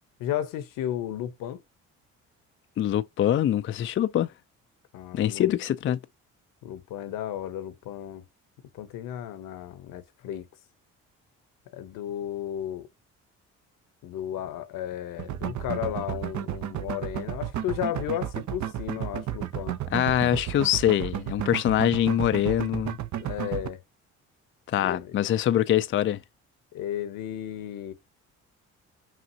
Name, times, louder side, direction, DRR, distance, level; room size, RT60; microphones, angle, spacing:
voice 1, 0.2-1.6 4.9-5.5 6.6-8.2 8.7-10.5 11.7-12.9 14.0-19.8 23.2-23.8 24.8-25.2 26.7-27.9, left 11 dB, 75° left, 0.9 m, -34 dB
voice 2, 2.8-4.3 5.1-6.0 19.9-23.0 24.7-26.2, left 11 dB, 35° left, 0.4 m, -24 dB
sound 1, 15.2-23.7, right 11 dB, 60° right, 0.7 m, -32 dB
5.9 x 2.4 x 2.7 m
supercardioid pair, 60°, 34 cm